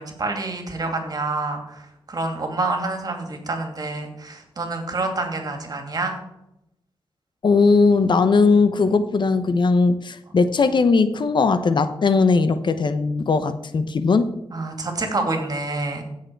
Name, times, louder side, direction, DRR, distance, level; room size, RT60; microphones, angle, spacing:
voice 1, 0.0-6.2 14.5-16.0, right 2 dB, 45° right, 4 dB, 2.5 m, -27 dB
voice 2, 7.4-14.4, left 4 dB, 55° left, 11 dB, 0.8 m, -19 dB
16.0 x 6.6 x 4.6 m, 0.85 s
wide cardioid pair, 90°, 9 cm